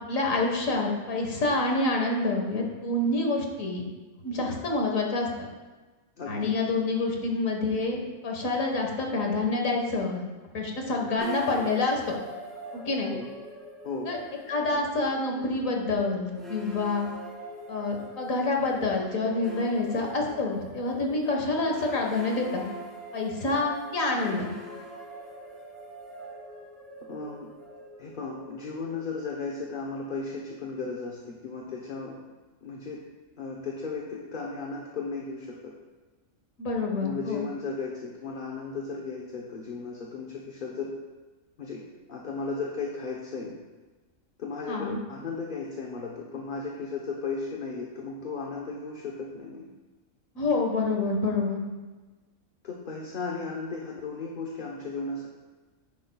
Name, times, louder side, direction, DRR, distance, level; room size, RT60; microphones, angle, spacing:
voice 1, 0.0-3.8 4.2-5.5 6.3-10.2 10.5-12.2 12.7-13.1 14.1-14.2 14.5-17.1 17.7-22.6 23.1-24.5 36.6-37.4 44.7-45.0 50.4-51.6, left 3 dB, 80° left, 1 dB, 1.9 m, -27 dB
voice 2, 6.2-6.5 13.1-13.3 13.8-14.1 27.1-27.5 28.0-32.1 32.6-33.0 33.4-35.7 37.0-40.9 41.6-41.8 42.1-43.5 44.4-49.6 52.6-55.3, left 4 dB, 45° left, -2 dB, 1.0 m, -35 dB
sound 1, 11.2-30.3, equal, ahead, 2.3 m, -43 dB
10.5 x 10.0 x 2.3 m, 1.3 s
omnidirectional pair, 1.4 m